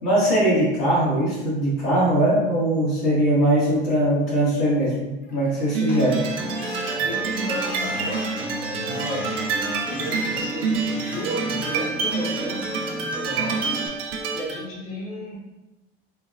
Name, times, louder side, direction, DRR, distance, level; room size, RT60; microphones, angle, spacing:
voice 1, 0.0-6.2, right 1 dB, 75° left, -8 dB, 1.2 m, -21 dB
Crying sobbing, 4.8-11.6 11.9-12.6, left 2 dB, 30° left, 0.7 m, -41 dB
sound 1, 5.7-14.6, right 4 dB, 70° right, 0.6 m, -27 dB
Acoustic guitar, 5.9-13.9, equal, 5° right, 0.3 m, -36 dB
voice 2, 6.9-9.5 9.8-14.0 14.3-15.4, equal, 45° left, -6 dB, 1.3 m, -34 dB
3.3 x 2.0 x 2.3 m, 1.1 s
hypercardioid pair, 85°, 30 cm